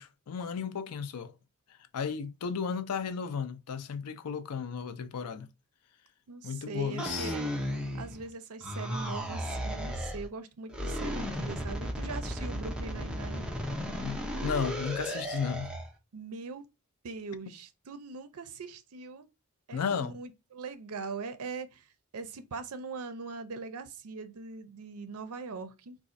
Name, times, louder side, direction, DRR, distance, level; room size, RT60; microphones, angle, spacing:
voice 1, 0.0-1.3 1.9-5.5 6.4-7.3 14.0-15.7 19.7-20.1, left 6 dB, 85° left, 0.4 m, -34 dB
voice 2, 6.3-7.5 7.9-13.5 16.1-16.6 17.0-19.3 19.7-21.9 22.1-26.0, right 4 dB, 70° right, 0.5 m, -41 dB
sound 1, 7.0-8.3 8.6-10.3 10.7-15.9, equal, 5° right, 0.6 m, -35 dB
3.9 x 2.4 x 2.5 m
head